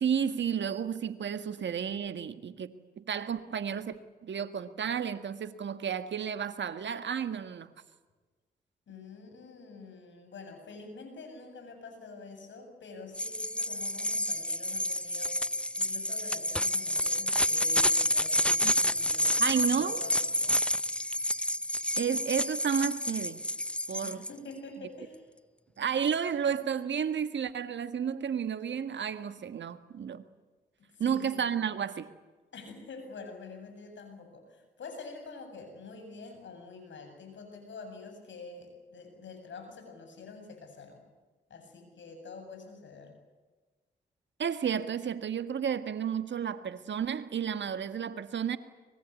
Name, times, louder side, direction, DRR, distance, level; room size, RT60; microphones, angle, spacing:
voice 1, 0.0-4.0 4.2-7.7 18.6-18.7 19.4-20.0 22.0-23.4 23.9-24.2 25.8-30.2 31.0-32.1 44.4-48.6, right 7 dB, 65° right, 11 dB, 1.7 m, -32 dB
voice 2, 8.9-20.6 24.0-25.3 30.8-31.7 32.5-41.0 41.5-43.1, left 3 dB, 65° left, 5 dB, 7.8 m, -47 dB
sound 1, 13.1-24.3, left 1 dB, 5° left, 0.7 m, -29 dB
24.5 x 21.0 x 8.4 m, 1.3 s
hypercardioid pair, 40°, 20 cm